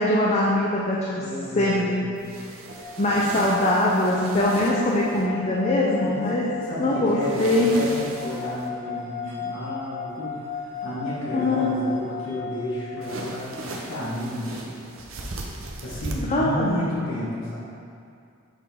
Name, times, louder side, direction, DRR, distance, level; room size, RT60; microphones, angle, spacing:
voice 1, 0.0-1.3 1.6-1.8 3.0-6.5 6.8-7.7 11.3-12.0 16.3-16.8, left 1 dB, 35° left, -4 dB, 0.5 m, -22 dB
voice 2, 1.2-2.0 6.0-6.3 6.6-14.8 15.8-17.6, left 1 dB, 65° left, -8 dB, 1.3 m, -32 dB
sound 1, 2.2-5.3 7.2-8.7 13.0-16.1, right 2 dB, 70° right, 0.7 m, -37 dB
sound 2, 2.7-13.9, left 6 dB, 35° right, 1.3 m, -36 dB
7.0 x 4.1 x 3.5 m, 2.4 s
head